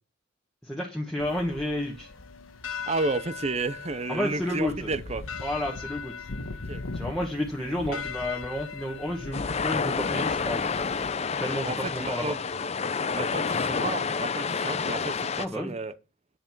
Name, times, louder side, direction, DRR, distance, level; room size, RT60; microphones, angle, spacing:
voice 1, 0.6-2.1 4.1-4.9 5.4-6.3 6.9-10.7 11.4-12.3 15.4-15.7, left 1 dB, ahead, 1.5 m, -31 dB
sound 1, 1.2-11.1, left 4 dB, 75° left, 1.1 m, -39 dB
voice 2, 2.9-5.2 6.7-6.8 7.9-8.0 11.6-12.4 13.1-15.9, right 3 dB, 30° right, 0.6 m, -32 dB
sound 2, 9.3-15.5, left 5 dB, 30° left, 0.5 m, -29 dB
10.0 x 7.7 x 4.6 m
head